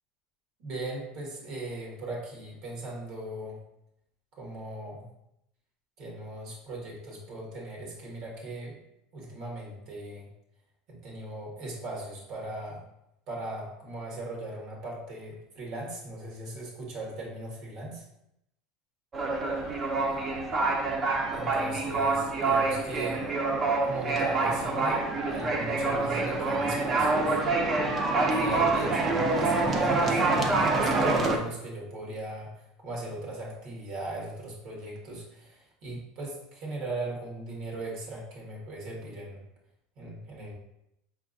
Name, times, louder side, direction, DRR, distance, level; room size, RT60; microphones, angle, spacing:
voice 1, 0.6-3.6 4.3-5.1 6.0-8.8 9.1-10.3 10.9-12.8 13.3-18.0 21.3-23.2 23.9-27.4 28.3-32.5 32.8-39.4 40.0-40.5, right 2 dB, 60° right, -2 dB, 1.7 m, -38 dB
sound 1, 19.1-31.4, right 3 dB, 30° right, 0.6 m, -26 dB
5.0 x 3.5 x 2.6 m, 0.81 s
supercardioid pair, 125°, 0 cm